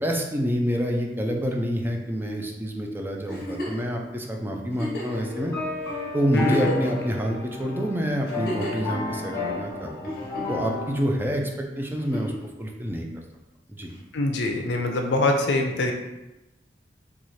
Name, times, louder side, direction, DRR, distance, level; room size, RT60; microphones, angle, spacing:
voice 1, 0.0-5.5 6.1-10.1 10.5-12.3 12.6-13.0 13.7-13.9, equal, 10° right, 1 dB, 0.4 m, -27 dB
Giggle, 3.3-3.9 4.7-5.2 5.9-6.0 6.3-7.1 8.2-8.9 10.0-10.7 12.0-12.4 13.9-14.0, equal, 55° left, 1.1 m, -32 dB
sound 1, 5.0-11.0, left 4 dB, 20° left, 0.7 m, -33 dB
voice 2, 6.3-6.7 14.1-15.9, left 2 dB, 75° left, 3 dB, 0.5 m, -24 dB
4.1 x 2.4 x 3.1 m, 1.0 s
head